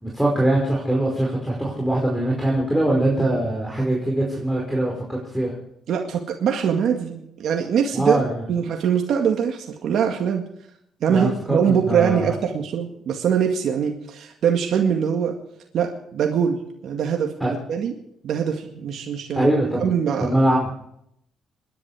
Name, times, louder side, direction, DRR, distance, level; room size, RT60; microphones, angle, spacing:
voice 1, 0.0-5.5 7.9-8.5 11.1-12.3 17.4-17.5 19.3-19.9 20.2-20.7, right 1 dB, ahead, -4 dB, 5.0 m, -22 dB
voice 2, 5.9-8.2 8.5-10.4 11.0-15.4 15.7-17.9 18.2-19.5 19.8-20.3, right 7 dB, 70° right, 2 dB, 1.9 m, -23 dB
26.5 x 11.0 x 4.9 m, 0.74 s
cardioid pair, 90°, 0 cm